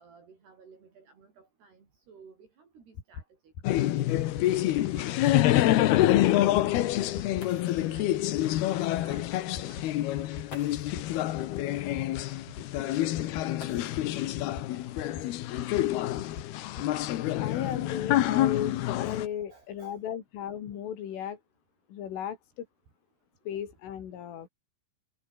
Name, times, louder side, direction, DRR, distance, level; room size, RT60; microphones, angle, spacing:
voice 1, 0.0-7.5 7.9-8.7 9.0-10.1 10.7-10.9 12.5-12.6 19.0-20.0, right 5 dB, 55° right, 7.7 m, -55 dB
sound 1, 2.9-3.2 3.5-3.8 4.1-4.4 4.7-5.0 5.3-5.6 5.9-6.2 6.5-6.8 7.1-7.4 7.7-8.0 8.3-8.6 8.9-9.2 9.5-9.8 10.1-10.4 10.7-11.0 11.3-11.6 11.9-12.2 12.5-12.8 13.1-13.4 13.7-14.0 14.3-14.6 14.9-15.2 15.5-15.8 16.1-16.4 16.7-16.8, left 6 dB, 55° left, 6.0 m, -40 dB
sound 2, 3.5-3.6 4.0-4.1 4.7-4.8 7.1-7.2 7.4-8.0 9.2-9.3 10.5-11.1 13.5-14.3 15.7-15.8 16.5-18.0 18.6-19.0 19.4-19.8, left 4 dB, 30° left, 4.9 m, -51 dB
sound 3, 3.6-19.3, left 14 dB, 70° left, 2.8 m, -27 dB
voice 2, 17.4-21.4 21.9-22.7 23.5-24.5, left 9 dB, 90° left, 5.6 m, -36 dB
omnidirectional pair, 5.5 m